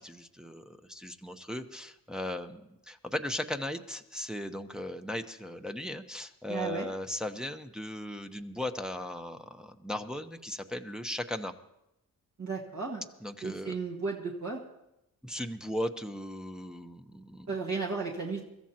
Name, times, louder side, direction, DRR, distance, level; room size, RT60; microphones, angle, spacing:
voice 1, 0.0-11.5 13.2-13.7 15.2-17.5, left 1 dB, ahead, 4 dB, 0.9 m, -37 dB
voice 2, 6.5-6.9 12.4-13.0 13.4-14.6 17.5-18.4, right 4 dB, 50° right, -2 dB, 1.9 m, -34 dB
24.0 x 14.0 x 2.9 m, 0.87 s
cardioid pair, 60°, 35 cm